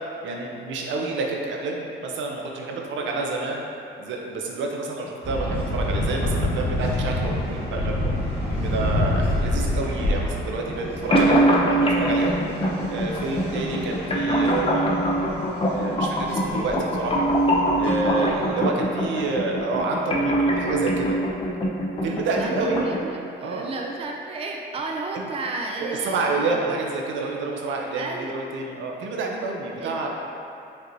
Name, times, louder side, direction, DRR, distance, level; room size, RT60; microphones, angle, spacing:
voice 1, 0.2-3.6 4.0-8.1 8.5-11.4 11.7-12.4 12.9-15.0 15.7-17.3 17.8-21.2 22.0-22.9 23.4-23.7 25.1-25.2 25.8-28.0 28.3-30.1, right 3 dB, 70° right, 0 dB, 0.6 m, -28 dB
sound 1, 5.2-18.5, left 1 dB, 10° left, 1.5 m, -28 dB
sound 2, 11.1-23.1, right 1 dB, 25° left, 0.6 m, -23 dB
voice 2, 14.3-14.7 15.9-16.4 18.2-18.4 22.4-26.6 27.9-28.4 29.8-30.1, right 3 dB, 30° right, 0 dB, 0.4 m, -33 dB
5.3 x 2.9 x 2.6 m, 2.6 s
cardioid pair, 90°, 20 cm